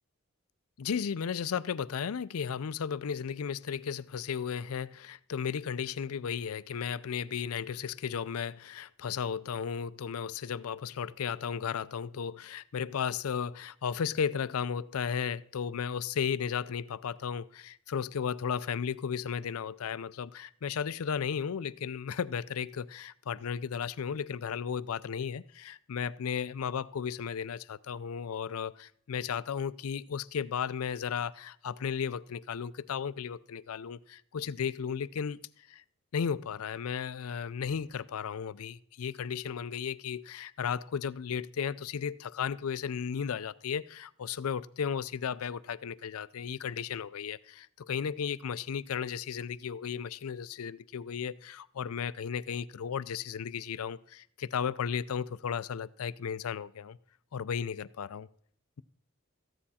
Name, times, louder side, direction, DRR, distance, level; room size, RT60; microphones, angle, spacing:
voice 1, 0.8-35.8 36.1-57.0 57.3-58.3, left 7 dB, 85° left, 0.5 m, -34 dB
14.0 x 9.8 x 4.2 m
head